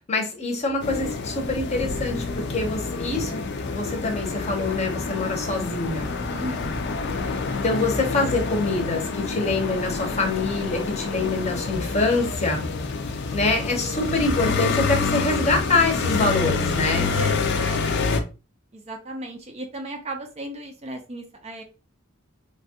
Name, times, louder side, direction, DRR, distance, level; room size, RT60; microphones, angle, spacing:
voice 1, 0.1-3.4 3.7-6.1 7.1-7.3 7.6-12.6 13.3-17.1, left 3 dB, 30° left, 2 dB, 0.8 m, -25 dB
sound 1, 0.8-18.2, left 4 dB, 55° left, 0.4 m, -27 dB
voice 2, 6.3-6.7 17.0-17.9 18.7-21.6, right 1 dB, 30° right, 4 dB, 0.5 m, -36 dB
3.1 x 2.3 x 2.7 m, 0.31 s
head